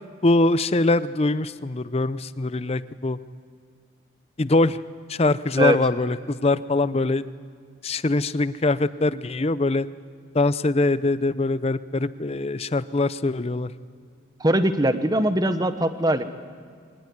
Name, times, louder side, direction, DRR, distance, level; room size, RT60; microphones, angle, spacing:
voice 1, 0.2-3.2 4.4-4.8 5.1-7.3 7.8-9.9 10.3-13.7, left 2 dB, 30° left, 15 dB, 0.5 m, -23 dB
voice 2, 14.4-16.3, right 1 dB, 20° right, 10 dB, 1.0 m, -21 dB
23.5 x 18.5 x 9.5 m, 2.1 s
head